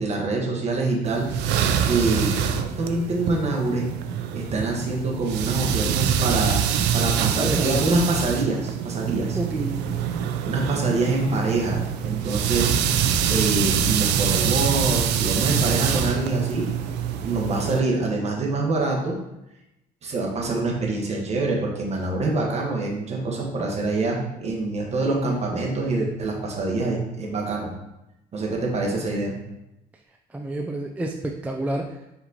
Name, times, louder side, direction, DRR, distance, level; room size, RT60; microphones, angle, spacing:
voice 1, 0.0-1.3 1.8-3.9 4.3-6.6 6.9-9.4 10.4-12.7 13.3-16.8 17.2-19.2 20.0-27.7 28.3-29.3, right 2 dB, 40° right, -1 dB, 1.2 m, -25 dB
sound 1, 1.1-17.8, right 8 dB, 85° right, 0.4 m, -25 dB
voice 2, 7.4-7.8 9.4-9.8 30.3-32.0, right 2 dB, 10° right, 1 dB, 0.3 m, -29 dB
4.4 x 3.9 x 2.8 m, 0.89 s
cardioid pair, 110°, 17 cm